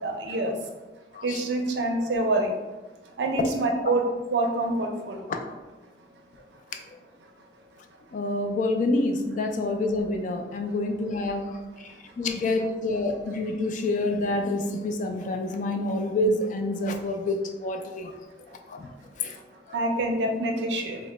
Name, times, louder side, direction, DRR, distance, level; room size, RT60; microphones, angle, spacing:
voice 1, 0.0-0.5 1.2-2.5 3.2-4.0 4.3-5.2 19.7-21.0, right 2 dB, 75° right, 2 dB, 0.5 m, -26 dB
voice 2, 1.1-1.4 3.4-3.5 3.8-3.9 5.3-5.4 6.9-7.0 8.1-18.1 18.5-19.4 19.7-19.8, left 2 dB, 45° left, 5 dB, 0.3 m, -28 dB
2.9 x 2.0 x 3.3 m, 1.2 s
head